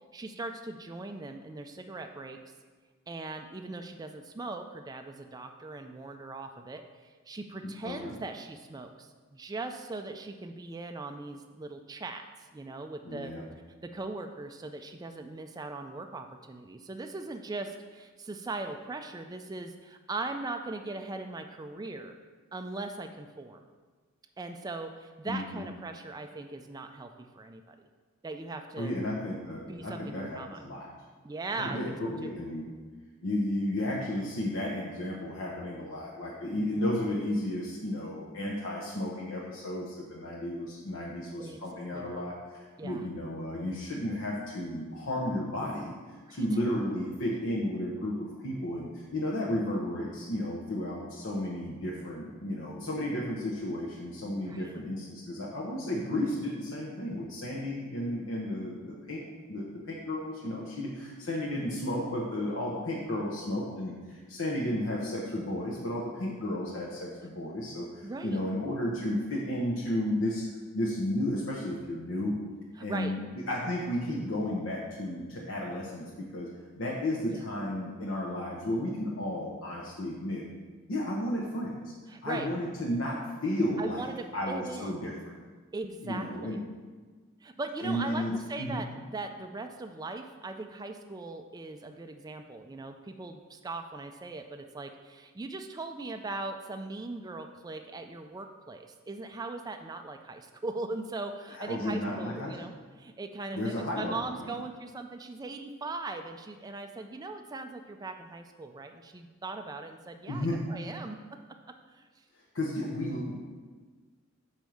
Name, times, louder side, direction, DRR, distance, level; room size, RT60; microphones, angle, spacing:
voice 1, 0.1-2.4 3.1-12.2 12.5-13.3 13.8-22.1 22.5-23.6 24.4-27.8 28.2-28.9 29.7-30.6 31.2-32.4 36.5-36.9 41.4-41.6 41.9-42.2 42.8-43.1 46.3-46.4 54.5-54.9 68.0-68.5 72.8-73.1 77.2-77.5 82.1-82.5 83.8-85.0 85.7-86.6 87.4-102.7 103.0-111.2 111.9-112.0, right 3 dB, 20° right, 6 dB, 0.3 m, -40 dB
voice 2, 7.6-8.1 13.0-13.4 25.3-25.6 28.8-30.9 31.6-32.7 33.2-45.9 46.3-70.4 70.7-72.3 72.8-73.2 73.5-76.5 76.8-80.4 80.9-81.9 82.2-84.0 84.3-85.3 86.0-86.6 87.8-88.8 101.5-102.6 103.5-104.2 104.4-104.5 110.3-110.6 112.5-113.3, left 1 dB, 65° left, -4 dB, 0.9 m, -33 dB
5.3 x 4.5 x 6.2 m, 1.4 s
head